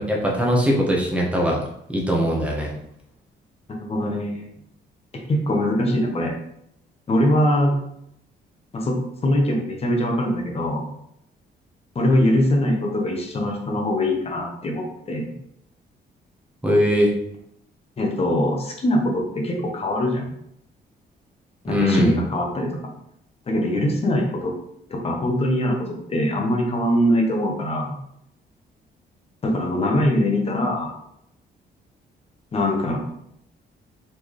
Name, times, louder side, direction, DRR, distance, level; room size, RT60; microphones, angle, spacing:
voice 1, 0.0-1.6 1.9-2.7 16.6-17.1 21.7-22.2, equal, 5° right, -2 dB, 1.0 m, -20 dB
voice 2, 3.7-4.5 5.3-6.3 7.1-7.7 8.7-9.0 9.2-10.8 11.9-15.3 18.0-20.3 21.6-22.7 23.5-24.5 24.9-28.0 29.4-30.9 32.5-33.0, left 1 dB, 35° left, 1 dB, 0.9 m, -22 dB
4.3 x 3.6 x 3.1 m, 0.76 s
cardioid pair, 140°, 18 cm